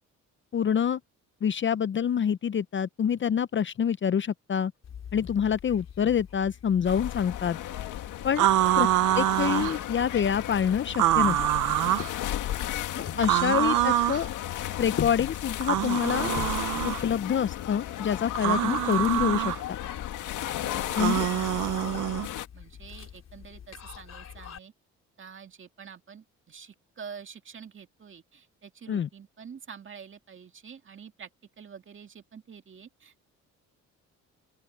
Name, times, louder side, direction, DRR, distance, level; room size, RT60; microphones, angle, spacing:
voice 1, 0.5-1.0 1.4-4.7 5.1-7.6 8.2-8.5 8.8-8.9 9.2-11.4 12.9-14.3 14.8-16.3 16.8-19.8 21.0-21.3 28.9-29.1, left 8 dB, 40° left, 0.7 m, -26 dB
sound 1, 4.8-24.6, left 8 dB, 60° left, 4.0 m, -44 dB
sound 2, 6.8-22.5, left 13 dB, 85° left, 2.0 m, -35 dB
voice 2, 8.4-8.9 12.5-13.9 20.6-21.0 21.3-22.3 22.5-24.7 25.2-31.3 31.6-33.3, right 6 dB, 40° right, 2.3 m, -47 dB
sound 3, 8.4-9.8 10.9-12.1 13.2-14.2 15.6-17.0 18.3-19.6 20.9-22.3, right 14 dB, 85° right, 0.8 m, -25 dB
open air
cardioid pair, 90°, 30 cm